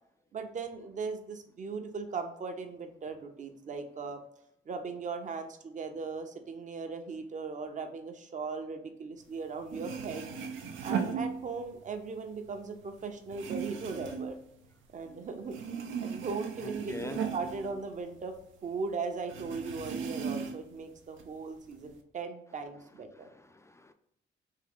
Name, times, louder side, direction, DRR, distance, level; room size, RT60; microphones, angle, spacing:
voice 1, 0.3-4.2 4.7-10.3 10.8-14.4 14.9-15.6 16.0-18.3 18.6-23.3, right 4 dB, 40° right, 6 dB, 0.7 m, -38 dB
sound 1, 9.4-9.5 9.7-11.9 12.2-15.2 15.5-18.5 18.7-18.8 19.3-20.8 21.2-21.9, right 6 dB, 80° right, 0.6 m, -37 dB
voice 2, 16.6-17.2 23.1-23.9, left 2 dB, 15° left, 8 dB, 0.3 m, -43 dB
3.7 x 2.7 x 3.5 m, 0.77 s
cardioid pair, 90°, 20 cm